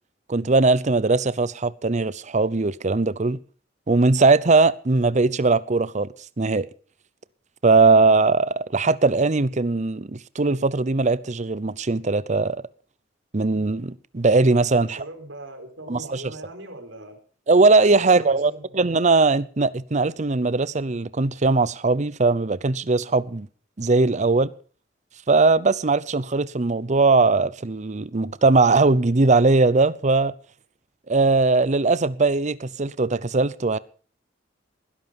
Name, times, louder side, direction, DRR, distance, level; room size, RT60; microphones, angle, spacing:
voice 1, 0.3-3.4 3.9-6.1 6.4-6.7 7.6-12.6 13.3-15.0 15.9-16.2 17.5-23.5 23.8-24.5 25.3-30.3 31.1-33.8, right 3 dB, 40° right, 0.7 m, -20 dB
voice 2, 14.8-17.2 18.0-18.8, right 1 dB, 80° right, 4.8 m, -40 dB
20.0 x 11.0 x 5.4 m
head